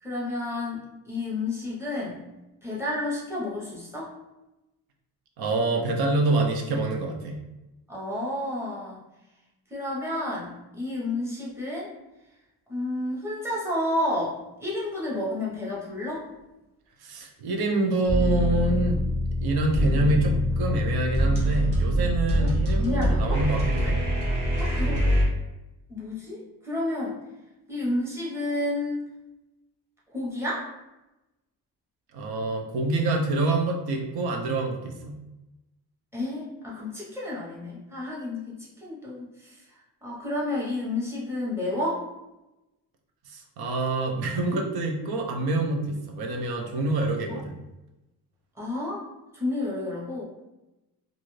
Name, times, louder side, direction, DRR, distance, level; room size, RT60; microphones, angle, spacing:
voice 1, 0.0-2.2 2.6-4.1 7.9-9.0 9.7-11.9 12.7-16.2 22.4-22.5 22.8-23.4 23.9-24.0 24.6-24.9 25.9-27.2 27.7-29.1 30.1-30.7 36.1-39.6 40.0-42.0 47.3-47.4 48.6-49.1 49.3-50.2, left 1 dB, 5° right, -6 dB, 0.8 m, -31 dB
voice 2, 5.4-7.4 17.0-19.0 19.4-24.0 32.1-35.2 43.3-47.6, right 2 dB, 80° right, 2 dB, 0.7 m, -26 dB
sound 1, 18.1-25.2, equal, 60° right, 1.1 m, -24 dB
2.6 x 2.4 x 3.0 m, 1.0 s
cardioid pair, 130°, 37 cm